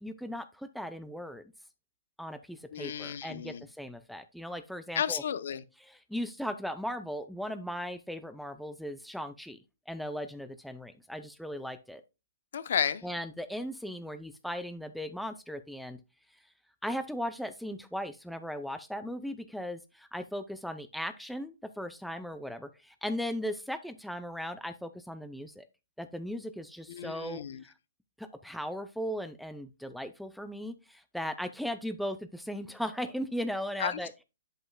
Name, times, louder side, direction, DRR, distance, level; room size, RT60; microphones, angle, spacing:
voice 1, 0.0-1.4 2.2-5.2 5.8-9.6 9.9-12.0 13.0-16.0 16.8-25.6 26.0-27.7 28.2-34.1, equal, ahead, 0.4 m, -37 dB
voice 2, 2.7-3.6 4.9-5.6 12.5-13.0 26.9-27.6 33.8-34.0, left 8 dB, 65° left, 0.7 m, -32 dB
7.8 x 7.7 x 2.2 m
hypercardioid pair, 150°, 0 cm